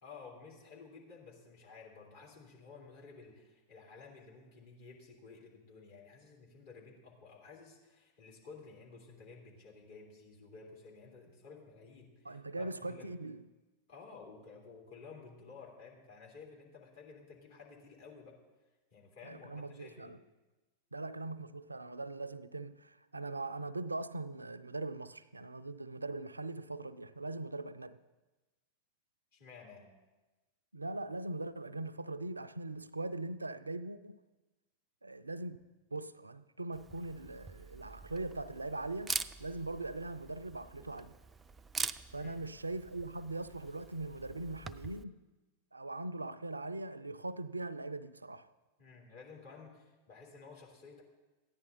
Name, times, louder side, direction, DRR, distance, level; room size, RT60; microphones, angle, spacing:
voice 1, 0.0-13.1 13.9-18.4 18.9-20.1 29.3-30.0 42.1-42.4 48.8-51.0, left 4 dB, 55° left, 3.2 m, -53 dB
voice 2, 12.2-13.4 19.2-20.2 20.9-28.0 30.7-34.2 35.0-35.6 35.9-39.1 39.4-41.1 42.1-45.2 45.7-48.5, right 2 dB, 80° right, 0.4 m, -41 dB
Camera, 36.7-45.0, right 4 dB, 15° right, 0.4 m, -44 dB
14.5 x 9.7 x 4.1 m
figure-of-eight pair, 90°, 0 cm